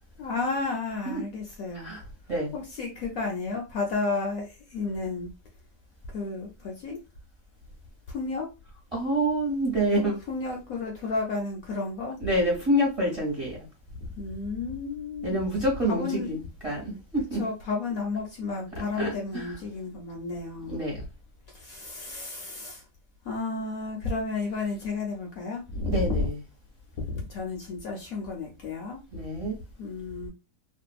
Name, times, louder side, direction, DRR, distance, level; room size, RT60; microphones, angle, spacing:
voice 1, 0.2-1.9 2.5-5.3 6.1-7.0 8.1-8.5 10.0-12.2 14.2-15.4 15.9-16.4 17.3-20.8 21.5-22.8 23.2-26.3 27.1-29.0 29.8-30.3, left 3 dB, 65° left, 1.0 m, -32 dB
voice 2, 8.9-10.1 12.2-13.7 15.2-17.4 19.0-19.5 20.7-21.0 25.8-26.4 29.1-29.6, right 1 dB, 25° right, 1.0 m, -27 dB
2.6 x 2.5 x 2.3 m
omnidirectional pair, 1.8 m